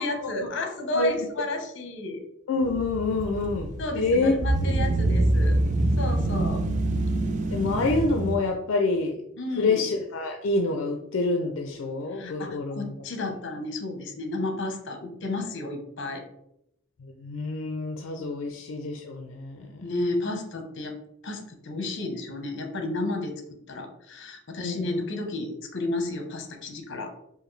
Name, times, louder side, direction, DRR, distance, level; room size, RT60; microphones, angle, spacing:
voice 1, 0.0-2.2 3.8-5.6 6.0-6.6 9.4-9.9 12.1-16.2 19.8-21.0 21.2-23.3 23.7-27.1, left 2 dB, 65° left, 5 dB, 0.8 m, -32 dB
voice 2, 2.5-4.3 7.5-9.2 9.6-12.9 17.0-19.7 24.6-25.0, left 3 dB, 80° left, 4 dB, 0.4 m, -27 dB
sound 1, 2.6-8.4, right 2 dB, 40° right, 0.4 m, -25 dB
4.8 x 2.5 x 3.1 m, 0.78 s
head